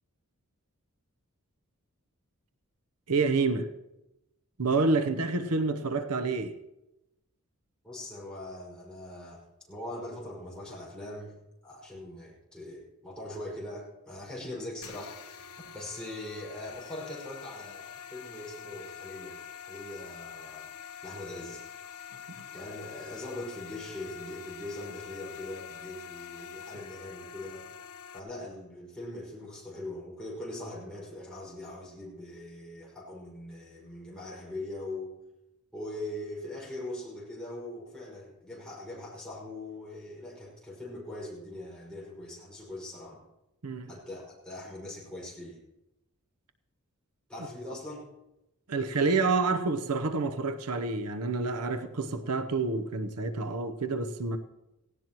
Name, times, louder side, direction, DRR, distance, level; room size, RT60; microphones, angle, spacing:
voice 1, 3.1-3.7 4.6-6.6 43.6-43.9 48.7-54.4, right 3 dB, 90° right, 0.9 m, -28 dB
voice 2, 7.8-9.4 9.7-11.4 11.6-19.4 19.7-20.7 21.0-21.6 22.5-27.6 28.1-35.1 35.7-43.2 43.9-45.6 47.3-48.0, left 1 dB, 5° left, 5.4 m, -41 dB
sound 1, 14.8-28.2, left 8 dB, 90° left, 0.9 m, -45 dB
18.0 x 17.0 x 3.0 m
head